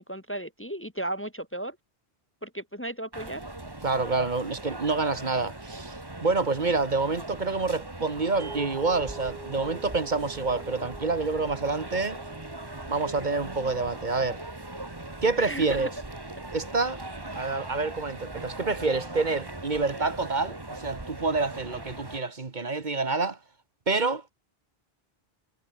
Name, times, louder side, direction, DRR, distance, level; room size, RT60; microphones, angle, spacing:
voice 1, 0.0-1.8 2.4-3.4 15.4-15.9, right 1 dB, 15° left, 1.1 m, -35 dB
sound 1, 3.1-22.2, right 2 dB, 20° right, 1.9 m, -40 dB
voice 2, 3.8-12.2 12.9-14.4 15.2-15.9 16.5-17.0 17.3-23.4 23.9-24.3, right 3 dB, 50° right, 1.5 m, -27 dB
sound 2, 8.4-18.7, right 5 dB, 65° right, 1.8 m, -48 dB
omnidirectional pair, 1.0 m